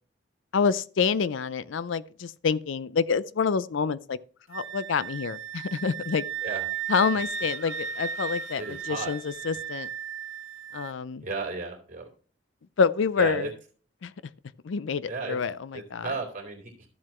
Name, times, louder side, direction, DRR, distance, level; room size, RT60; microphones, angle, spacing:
voice 1, 0.5-4.2 4.5-6.2 6.9-9.9 10.7-11.3 12.8-13.5 14.0-14.1 14.6-16.1, left 5 dB, 75° left, 0.4 m, -27 dB
Wind instrument woodwind instrument, 4.5-10.9, right 7 dB, 90° right, 1.0 m, -35 dB
voice 2, 8.6-9.1 11.2-12.1 13.2-13.5 15.0-15.4 15.7-16.9, right 3 dB, 40° right, 2.9 m, -34 dB
13.0 x 7.5 x 3.0 m
head